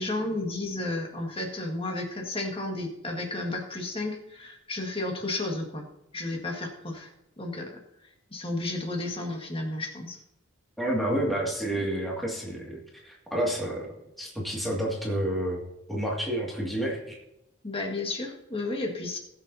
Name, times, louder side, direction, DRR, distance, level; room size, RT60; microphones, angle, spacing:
voice 1, 0.0-5.9 6.1-7.1 7.4-7.7 8.3-10.2 17.6-19.2, left 2 dB, 25° left, 1 dB, 1.7 m, -32 dB
voice 2, 10.8-15.6 15.9-17.2, right 1 dB, ahead, -3 dB, 2.1 m, -30 dB
20.5 x 7.0 x 2.7 m, 0.87 s
head